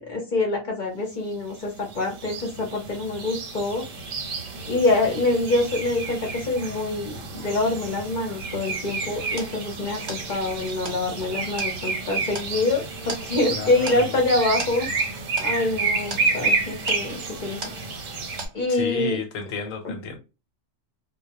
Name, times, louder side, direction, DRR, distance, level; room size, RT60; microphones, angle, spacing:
voice 1, 0.0-3.9 4.7-14.9 15.4-17.7 18.5-19.2 19.8-19.9, left 2 dB, 45° left, 0.7 m, -25 dB
sound 1, 1.6-18.5, right 4 dB, 85° right, 1.1 m, -30 dB
sound 2, 9.4-18.1 18.4-19.0, right 3 dB, 40° right, 0.6 m, -40 dB
voice 2, 13.5-14.2 18.7-20.2, left 5 dB, 85° left, 1.1 m, -32 dB
2.2 x 2.1 x 2.7 m
omnidirectional pair, 1.3 m